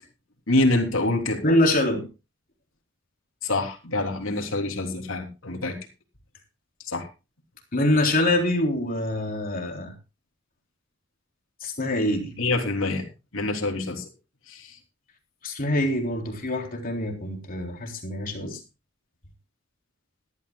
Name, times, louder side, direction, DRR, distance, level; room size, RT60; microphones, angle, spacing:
voice 1, 0.5-1.4 3.4-5.8 6.9-7.1 12.4-13.0 13.3-14.0 14.5-14.7, left 2 dB, 75° left, 3.4 m, -25 dB
voice 2, 1.4-2.0 7.7-9.9 11.6-12.3 15.4-18.6, left 1 dB, 45° left, 3.7 m, -24 dB
20.5 x 13.0 x 2.3 m
head